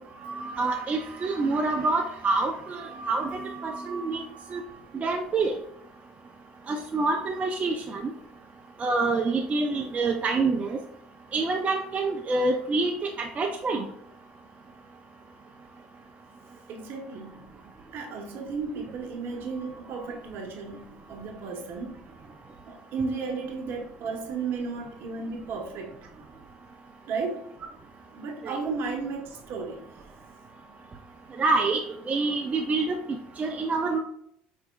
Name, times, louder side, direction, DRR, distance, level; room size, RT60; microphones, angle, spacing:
voice 1, 0.2-4.6 4.9-5.5 6.7-8.1 8.8-10.8 11.3-13.8 28.4-28.6 31.4-31.8 32.1-34.0, right 3 dB, 35° right, 2 dB, 0.5 m, -27 dB
voice 2, 16.7-17.5 17.9-22.0 22.7-25.9 27.1-27.4 28.1-29.8, right 4 dB, 60° right, 4 dB, 0.9 m, -34 dB
5.4 x 3.2 x 2.2 m, 0.71 s
supercardioid pair, 80°, 4 cm